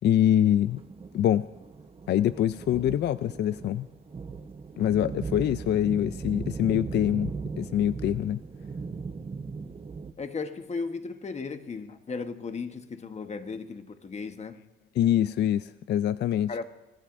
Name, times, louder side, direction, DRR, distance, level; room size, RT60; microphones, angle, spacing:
voice 1, 0.0-0.8 1.1-1.5 2.1-3.9 4.8-7.3 7.6-8.4 15.0-16.6, left 11 dB, 60° left, 0.4 m, -24 dB
sound 1, 0.7-10.1, right 5 dB, 30° right, 1.0 m, -38 dB
voice 2, 10.2-14.6 16.5-16.6, left 4 dB, 35° left, 1.2 m, -36 dB
25.5 x 17.5 x 2.6 m
cardioid pair, 90°, 20 cm